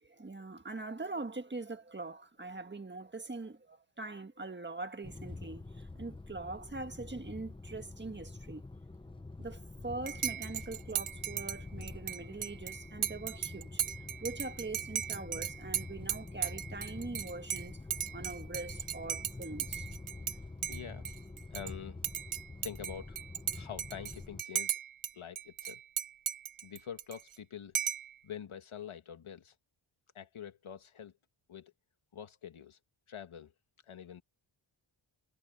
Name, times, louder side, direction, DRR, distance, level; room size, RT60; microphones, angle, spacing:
voice 1, 0.0-8.6 9.4-13.8 14.2-17.8 18.1-19.9, right 3 dB, 20° right, 1.6 m, -42 dB
sound 1, 5.0-24.4, left 2 dB, 10° left, 0.6 m, -46 dB
Dishes pots and pans / Cutlery silverware / Chink clink, 10.1-20.4 20.6-21.7 22.0-25.1 25.4-27.4 27.7-28.1, right 10 dB, 80° right, 0.8 m, -37 dB
voice 2, 20.7-21.1 21.5-22.0 22.6-23.2 23.5-24.7 25.1-25.8 26.6-27.8 28.2-29.5 30.1-31.1 31.5-31.7 32.1-32.8 33.1-33.5 33.8-34.2, left 8 dB, 80° left, 2.0 m, -45 dB
wide cardioid pair, 110°, 48 cm